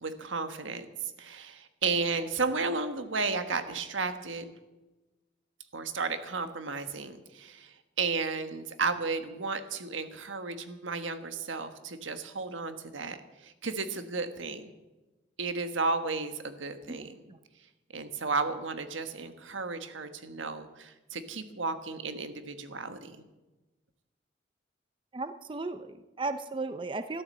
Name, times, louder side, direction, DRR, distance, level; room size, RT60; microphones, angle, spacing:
voice 1, 0.0-0.9 1.2-4.5 5.7-13.2 13.4-14.7 15.4-17.1 17.9-23.2, right 4 dB, 85° right, 9 dB, 1.4 m, -33 dB
voice 2, 16.9-17.4 25.1-27.2, right 3 dB, 25° right, 10 dB, 0.6 m, -36 dB
13.0 x 12.5 x 7.6 m, 1.1 s
head